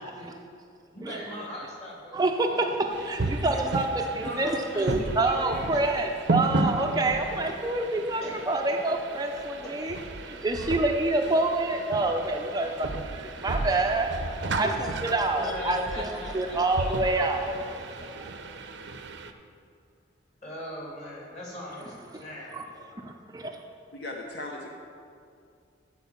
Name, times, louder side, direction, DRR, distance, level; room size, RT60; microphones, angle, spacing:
voice 1, 0.9-2.8 4.1-5.9 8.2-8.4 9.6-9.7 15.4-17.4 20.4-22.9, left 1 dB, 35° left, -4 dB, 2.6 m, -40 dB
voice 2, 2.1-18.3 22.1-22.2 22.5-22.6 23.0-23.5, right 2 dB, 20° right, 3 dB, 0.5 m, -27 dB
sound 1, 2.9-19.3, right 2 dB, 70° right, 0.7 m, -34 dB
voice 3, 23.9-24.7, left 2 dB, 60° left, 0 dB, 0.9 m, -37 dB
13.5 x 4.5 x 7.2 m, 2.4 s
head